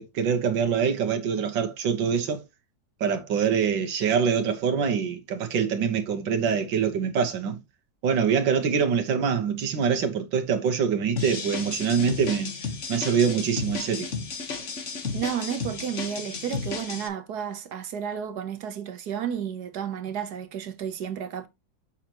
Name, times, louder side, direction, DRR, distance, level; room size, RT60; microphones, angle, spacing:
voice 1, 0.0-2.4 3.0-7.6 8.0-12.5 12.9-14.1, right 6 dB, 90° right, 1.9 m, -24 dB
sound 1, 11.2-17.1, left 5 dB, 45° left, 1.5 m, -33 dB
voice 2, 15.1-21.5, right 8 dB, 65° right, 1.4 m, -32 dB
7.2 x 6.6 x 2.9 m
omnidirectional pair, 2.0 m